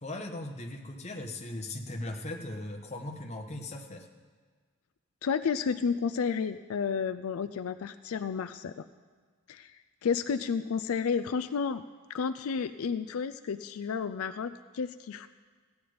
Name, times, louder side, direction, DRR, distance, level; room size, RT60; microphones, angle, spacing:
voice 1, 0.0-4.1, left 1 dB, 30° left, 3 dB, 1.2 m, -38 dB
voice 2, 5.2-8.8 9.5-9.7 10.0-11.8 12.1-15.3, left 6 dB, 80° left, 11 dB, 0.4 m, -31 dB
16.0 x 9.5 x 5.1 m, 1.6 s
head